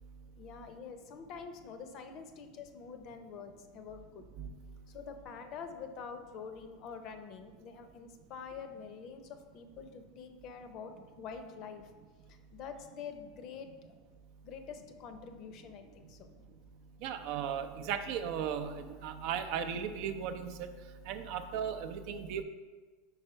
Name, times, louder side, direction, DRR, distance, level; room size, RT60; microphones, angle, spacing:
voice 1, 0.4-4.3 4.9-11.9 12.3-13.9 14.4-16.4, left 6 dB, 50° left, 7 dB, 0.6 m, -46 dB
voice 2, 17.0-20.6 21.1-22.4, right 8 dB, 60° right, 9 dB, 0.5 m, -36 dB
4.8 x 4.5 x 4.4 m, 1.4 s
supercardioid pair, 115°, 0 cm